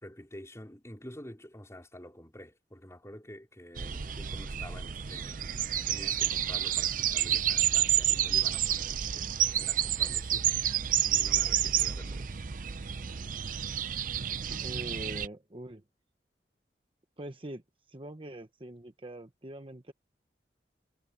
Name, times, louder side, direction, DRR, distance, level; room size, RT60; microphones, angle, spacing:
voice 1, 0.0-10.7 11.0-12.4, left 1 dB, 15° left, 4.6 m, -49 dB
sound 1, 3.8-15.3, right 10 dB, 50° right, 0.6 m, -29 dB
voice 2, 14.6-15.8 17.2-17.6 17.9-19.9, right 1 dB, 30° right, 1.1 m, -43 dB
head